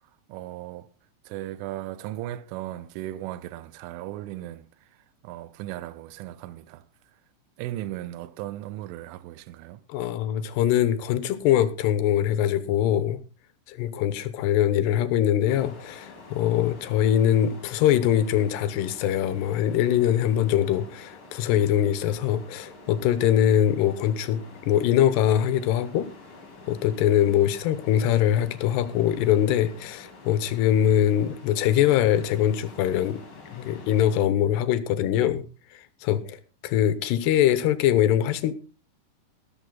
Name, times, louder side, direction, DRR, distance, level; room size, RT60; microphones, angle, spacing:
voice 1, 0.3-0.9 1.3-5.0 5.2-6.8 7.6-9.8, right 14 dB, 80° right, 3.2 m, -36 dB
voice 2, 9.9-13.2 13.7-26.1 26.7-33.2 33.5-35.4 35.7-38.5, left 11 dB, 70° left, 2.7 m, -23 dB
sound 1, 15.5-34.3, left 3 dB, 30° left, 3.3 m, -47 dB
14.5 x 13.5 x 3.9 m
omnidirectional pair, 5.8 m